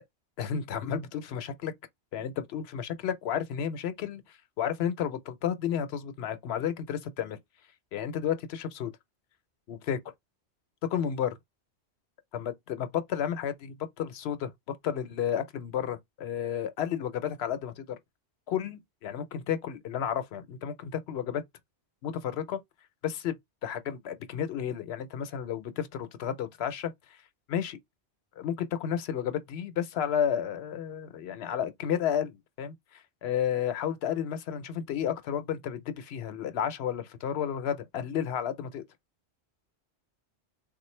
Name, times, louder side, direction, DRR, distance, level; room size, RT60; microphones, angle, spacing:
voice 1, 0.4-1.7 2.1-7.4 7.9-8.9 9.7-10.0 10.8-11.3 12.3-14.5 14.8-17.9 18.5-21.4 22.0-22.6 23.0-23.4 23.6-27.2 27.5-27.8 28.4-38.8, left 9 dB, 70° left, 0.8 m, -32 dB
3.7 x 2.4 x 3.1 m
omnidirectional pair, 1.1 m